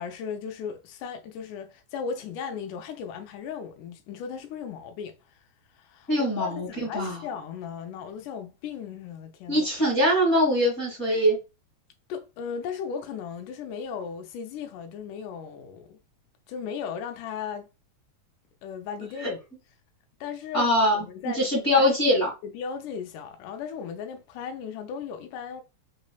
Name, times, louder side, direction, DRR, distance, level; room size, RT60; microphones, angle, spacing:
voice 1, 0.0-5.4 5.7-9.9 12.1-16.0 16.5-17.7 18.6-19.4 20.2-20.7 21.0-21.5 21.7-21.9 22.4-25.6, left 6 dB, 90° left, 2.2 m, -36 dB
voice 2, 6.1-7.2 9.5-11.4 19.2-19.3 20.5-22.3, equal, 35° left, 1.3 m, -23 dB
4.8 x 3.1 x 2.2 m
omnidirectional pair, 3.5 m